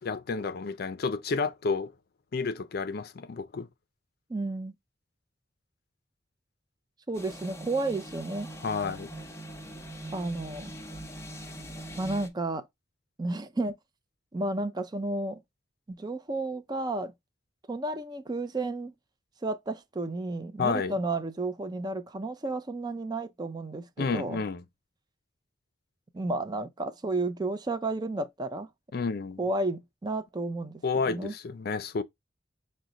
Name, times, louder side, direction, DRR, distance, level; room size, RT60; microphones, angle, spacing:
voice 1, 0.0-1.9 2.3-3.7 8.6-9.1 20.6-21.0 24.0-24.6 28.9-29.4 30.8-32.0, left 4 dB, 55° left, 0.4 m, -30 dB
voice 2, 4.3-4.7 7.1-8.5 10.1-10.7 12.0-12.7 13.2-13.8 14.3-15.4 15.9-17.1 17.7-18.9 19.4-24.4 26.1-28.7 29.4-30.8 31.1-31.3, right 2 dB, 25° right, 0.4 m, -32 dB
sound 1, 7.1-12.3, right 1 dB, 15° left, 0.7 m, -42 dB
6.0 x 2.1 x 3.8 m
head